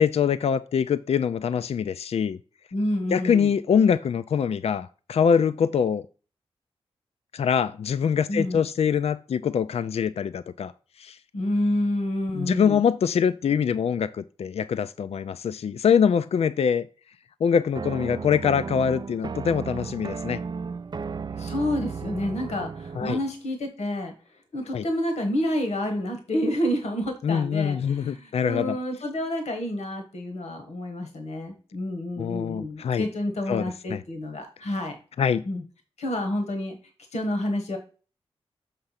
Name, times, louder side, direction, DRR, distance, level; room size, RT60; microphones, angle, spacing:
voice 1, 0.0-2.4 3.1-6.0 7.3-10.7 11.0-11.2 12.3-16.9 17.4-20.4 23.0-23.2 24.7-24.8 27.2-28.8 32.2-33.1 33.5-33.6 33.9-34.0 35.2-35.4, left 7 dB, 70° left, 0.4 m, -24 dB
voice 2, 2.7-3.5 8.3-8.7 11.3-12.8 21.4-24.1 24.5-35.0 35.4-35.6 36.0-36.7 37.1-37.8, left 1 dB, 85° left, 1.3 m, -29 dB
sound 1, 17.7-23.3, right 5 dB, 40° right, 0.4 m, -34 dB
6.6 x 3.5 x 5.7 m
cardioid pair, 60°, 11 cm